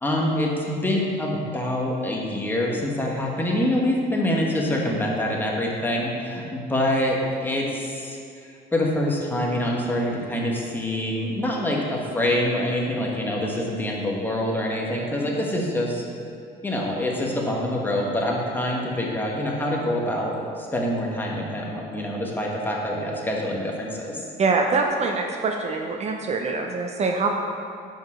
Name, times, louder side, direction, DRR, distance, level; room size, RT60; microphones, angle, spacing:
voice 1, 0.0-8.2 8.7-16.1 16.6-24.2, left 1 dB, 10° left, -2 dB, 1.3 m, -25 dB
voice 2, 24.4-27.3, right 4 dB, 40° right, 3 dB, 0.6 m, -24 dB
6.3 x 5.2 x 6.0 m, 2.4 s
cardioid pair, 110°, 17 cm